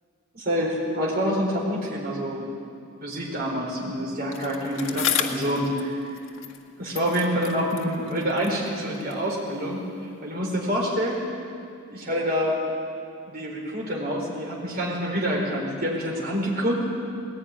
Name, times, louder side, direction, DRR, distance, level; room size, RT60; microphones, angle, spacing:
voice 1, 0.3-2.4 3.0-5.9 6.8-9.8 10.2-11.2 11.9-12.6 13.3-16.7, equal, 45° right, -3 dB, 4.2 m, -27 dB
Bicycle, 4.3-6.7 6.9-9.3 10.1-10.2, left 8 dB, 70° left, 1.7 m, -33 dB
20.0 x 16.5 x 9.7 m, 2.4 s
head